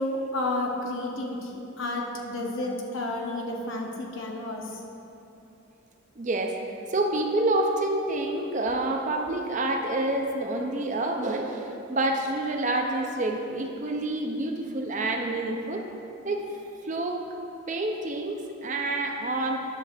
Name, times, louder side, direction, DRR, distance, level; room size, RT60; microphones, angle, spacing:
voice 1, 0.0-1.5 1.8-4.7, left 2 dB, 70° left, 0 dB, 1.0 m, -31 dB
voice 2, 6.2-6.6 6.9-15.8 16.2-16.4 16.8-17.2 17.7-19.6, right 2 dB, 35° right, 3 dB, 0.6 m, -28 dB
9.7 x 3.3 x 6.6 m, 2.8 s
head